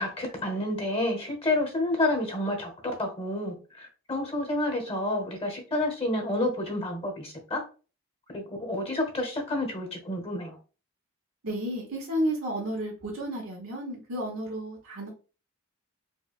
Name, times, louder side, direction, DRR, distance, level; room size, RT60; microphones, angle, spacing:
voice 1, 0.0-7.6 8.3-10.6, left 1 dB, 30° left, 3 dB, 1.1 m, -29 dB
voice 2, 11.4-15.1, right 1 dB, 90° right, -2 dB, 0.9 m, -32 dB
4.6 x 2.2 x 2.4 m, 0.35 s
head